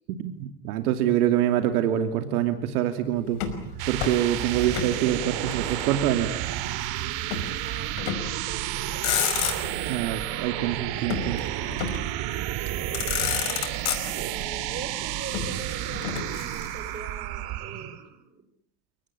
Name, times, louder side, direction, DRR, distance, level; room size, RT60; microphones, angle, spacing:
voice 1, 0.1-3.4 3.9-6.3 9.9-11.5, right 11 dB, 75° right, 9 dB, 2.7 m, -25 dB
Motor vehicle (road), 3.3-5.0 5.2-6.3 7.3-7.5 8.0-8.4 8.8-9.9 11.1-12.1 12.7-12.8 12.9-14.4 15.3-17.0, left 10 dB, 65° left, 5.6 m, -30 dB
sound 1, 3.5-18.1, right 13 dB, 55° right, 2.9 m, -31 dB
voice 2, 7.6-9.4 12.5-13.1 14.2-18.4, right 5 dB, 25° right, 9 dB, 5.9 m, -42 dB
30.0 x 18.5 x 9.9 m, 0.68 s
supercardioid pair, 100°, 44 cm